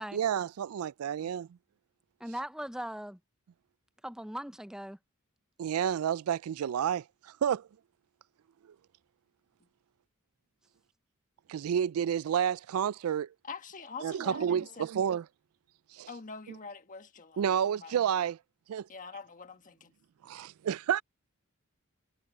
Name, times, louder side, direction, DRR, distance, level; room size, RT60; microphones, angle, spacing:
voice 1, 0.1-1.5 5.6-7.7 11.5-13.3 14.0-15.2 15.9-16.1 17.4-18.4 18.7-18.9 20.3-21.0, right 8 dB, 75° right, 0.3 m, -30 dB
voice 2, 2.2-3.2 4.0-5.0, equal, 5° right, 0.6 m, -39 dB
voice 3, 13.4-14.9 16.1-17.4 17.8-17.9 18.9-19.9, left 4 dB, 40° left, 1.4 m, -44 dB
head